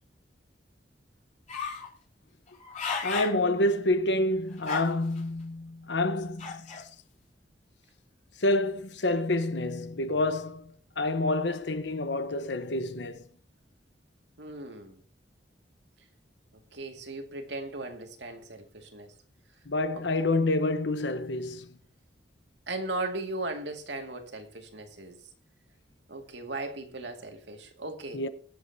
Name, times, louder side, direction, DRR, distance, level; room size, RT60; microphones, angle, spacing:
sound 1, 1.5-1.9 2.5-3.4 3.9-4.0 4.6-5.2 6.4-6.8, left 5 dB, 45° left, 4.5 m, -34 dB
voice 1, 3.0-6.9 8.4-13.3 19.7-21.7 28.1-28.3, left 2 dB, 75° left, 1.1 m, -28 dB
voice 2, 14.4-15.0 16.7-19.1 19.9-20.0 22.7-25.2 26.1-28.2, right 2 dB, 75° right, 2.2 m, -37 dB
23.5 x 8.1 x 2.8 m
head